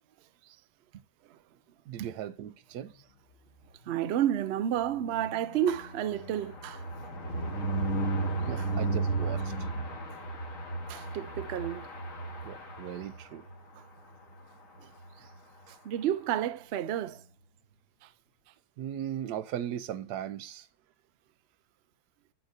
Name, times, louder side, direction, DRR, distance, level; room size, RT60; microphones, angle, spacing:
voice 1, 1.9-2.9 8.5-9.7 12.4-13.4 15.7-15.8 18.8-20.7, right 10 dB, 85° right, 1.2 m, -38 dB
voice 2, 3.9-6.8 10.9-11.9 15.8-17.2, right 10 dB, 65° right, 0.6 m, -30 dB
sound 1, 4.7-13.6 14.0-14.2 14.4-14.5 14.8-15.1, right 2 dB, 55° left, 1.8 m, -34 dB
8.6 x 7.8 x 2.7 m
omnidirectional pair, 1.7 m